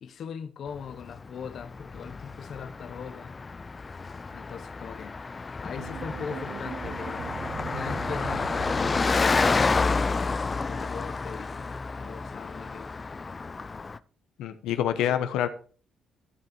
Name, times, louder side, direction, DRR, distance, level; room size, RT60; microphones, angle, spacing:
voice 1, 0.0-3.4 4.3-12.9 14.7-15.3, left 7 dB, 60° left, 0.9 m, -40 dB
Car passing by, 0.8-14.0, left 4 dB, 30° left, 0.4 m, -30 dB
sound 1, 5.8-10.0, right 8 dB, 65° right, 0.6 m, -40 dB
voice 2, 14.4-15.5, left 10 dB, 90° left, 0.8 m, -26 dB
14.0 x 5.4 x 4.3 m
cardioid pair, 90°, 0 cm